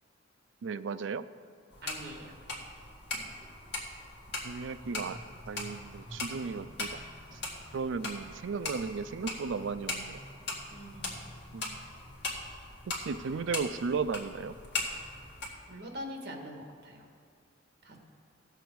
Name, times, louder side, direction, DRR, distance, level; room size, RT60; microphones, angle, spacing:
voice 1, 0.6-1.2 4.4-5.2 5.4-7.0 7.3-7.4 7.7-10.2 11.5-11.8 13.0-14.5, right 5 dB, 70° right, 12 dB, 0.4 m, -35 dB
sound 1, 1.7-15.5, left 2 dB, 60° left, 1.8 m, -40 dB
voice 2, 1.8-2.3 10.7-11.2 15.7-17.1 17.8-18.0, equal, 55° right, 2 dB, 1.6 m, -43 dB
17.0 x 6.9 x 4.6 m, 2.3 s
head